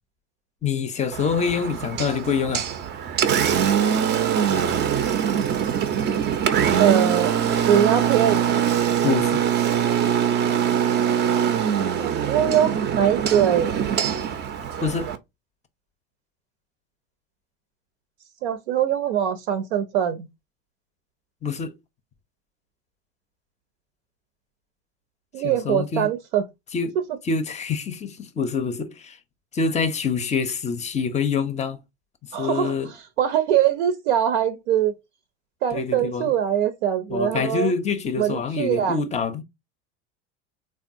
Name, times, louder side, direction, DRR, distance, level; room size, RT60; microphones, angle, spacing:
voice 1, 0.6-2.7 9.0-9.4 14.8-15.1 21.4-21.8 25.4-26.1 26.7-27.0 27.2-29.2 29.5-31.8 32.2-32.9 35.7-36.3 37.1-39.4, left 5 dB, 20° left, 0.5 m, -26 dB
Engine, 1.1-15.2, right 8 dB, 30° right, 0.5 m, -23 dB
voice 2, 6.8-7.3 7.7-8.4 12.0-13.7 18.4-20.3 25.3-26.4 32.3-32.7 33.2-34.9 35.6-37.7 38.2-39.0, right 10 dB, 75° right, 0.6 m, -22 dB
3.5 x 2.3 x 2.5 m
hypercardioid pair, 85°, 35 cm